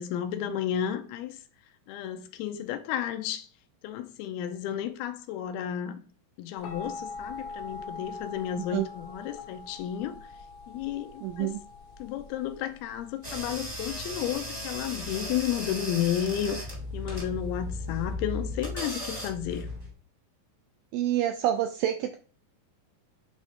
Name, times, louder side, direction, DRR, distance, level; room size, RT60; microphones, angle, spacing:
voice 1, 0.0-1.4 1.9-3.5 3.8-6.0 6.4-10.2 10.7-11.5 12.0-19.7, left 10 dB, 85° left, 2.5 m, -32 dB
sound 1, 6.6-18.1, left 3 dB, 65° left, 2.2 m, -44 dB
voice 2, 11.2-11.6 20.9-22.2, right 12 dB, 85° right, 2.0 m, -27 dB
sound 2, 13.2-19.9, left 1 dB, 35° right, 0.6 m, -36 dB
8.2 x 3.8 x 3.5 m
omnidirectional pair, 4.6 m